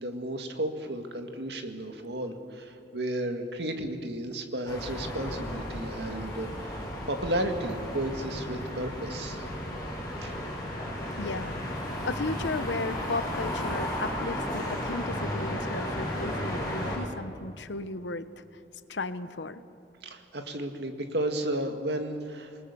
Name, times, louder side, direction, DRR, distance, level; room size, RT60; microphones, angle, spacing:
voice 1, 0.0-9.4 10.2-10.4 20.0-22.6, right 1 dB, 65° right, 5 dB, 2.1 m, -33 dB
sound 1, 4.7-17.0, left 1 dB, 20° left, 5.9 m, -34 dB
voice 2, 11.0-18.4 18.9-19.6, left 3 dB, 75° left, 12 dB, 1.0 m, -35 dB
27.5 x 20.0 x 6.9 m, 2.7 s
head